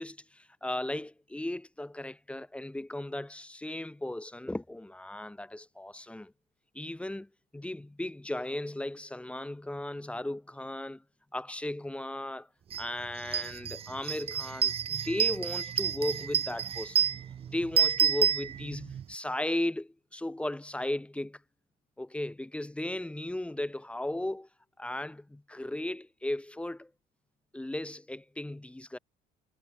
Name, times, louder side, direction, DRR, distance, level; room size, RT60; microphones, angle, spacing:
voice 1, 0.0-6.3 6.7-11.0 11.3-12.5 12.8-17.1 17.5-21.4 22.0-24.5 24.8-26.9 27.5-29.0, left 1 dB, 5° left, 0.7 m, -36 dB
sound 1, 12.7-12.8 13.2-19.0, right 9 dB, 35° right, 0.5 m, -29 dB
cardioid pair, 110°, 17 cm